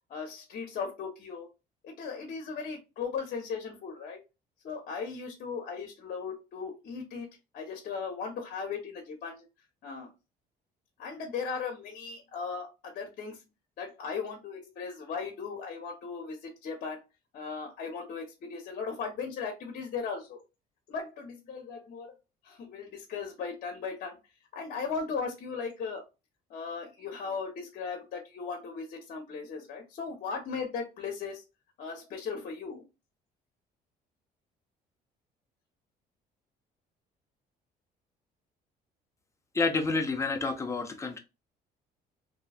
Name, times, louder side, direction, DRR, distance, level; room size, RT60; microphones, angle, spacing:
voice 1, 0.1-1.5 1.8-4.2 4.6-7.3 7.5-9.4 9.8-10.1 11.0-13.4 13.8-17.0 17.3-20.4 20.9-22.1 22.4-24.2 24.5-26.0 26.5-31.4 31.8-32.8, left 5 dB, 55° left, 0.9 m, -37 dB
voice 2, 39.5-41.2, left 3 dB, 15° left, 0.7 m, -29 dB
3.1 x 2.8 x 2.3 m
cardioid pair, 110°, 17 cm